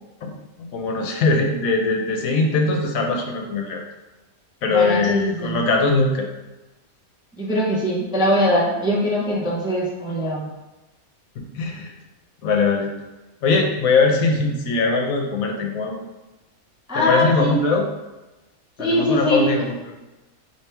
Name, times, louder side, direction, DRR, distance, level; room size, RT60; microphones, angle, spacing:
voice 1, 0.6-3.8 4.6-6.3 11.4-11.9 12.4-12.9 13.4-16.0 16.9-17.8 18.8-19.9, left 3 dB, 75° left, 2 dB, 1.1 m, -21 dB
voice 2, 4.7-5.7 7.4-10.5 16.9-17.6 18.8-19.5, equal, 5° right, -5 dB, 0.5 m, -22 dB
4.4 x 3.1 x 3.3 m, 1.1 s
omnidirectional pair, 1.5 m